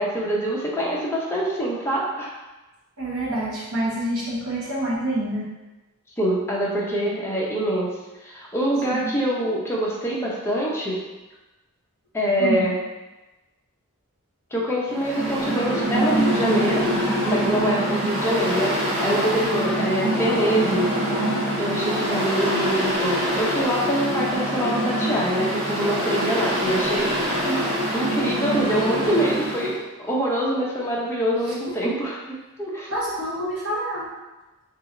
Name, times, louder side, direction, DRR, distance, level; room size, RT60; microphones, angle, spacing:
voice 1, 0.0-2.3 6.2-7.9 8.2-11.0 12.1-12.8 14.5-16.8 17.2-20.9 21.6-27.1 27.9-32.1 32.6-32.9, right 1 dB, 10° left, -4 dB, 0.7 m, -24 dB
voice 2, 3.0-5.5 8.9-9.1 12.4-12.7 27.2-27.7 31.6-31.7 32.9-34.1, right 1 dB, 70° right, -6 dB, 1.2 m, -27 dB
Mechanical fan, 14.9-29.7, equal, 30° right, 1.1 m, -24 dB
2.9 x 2.8 x 3.8 m, 1.1 s
head